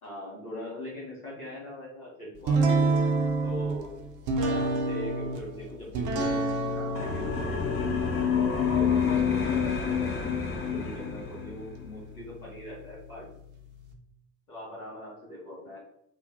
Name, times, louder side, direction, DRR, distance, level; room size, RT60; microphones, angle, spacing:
voice 1, 0.0-2.8 3.4-3.9 4.4-6.5 6.7-7.8 8.7-13.3 14.5-15.8, left 1 dB, 90° left, -6 dB, 0.8 m, -41 dB
sound 1, 2.5-13.9, right 2 dB, 45° right, 0.5 m, -31 dB
sound 2, 7.0-11.6, left 6 dB, 35° left, 0.5 m, -28 dB
2.2 x 2.1 x 2.6 m, 0.76 s
figure-of-eight pair, 40°, 43 cm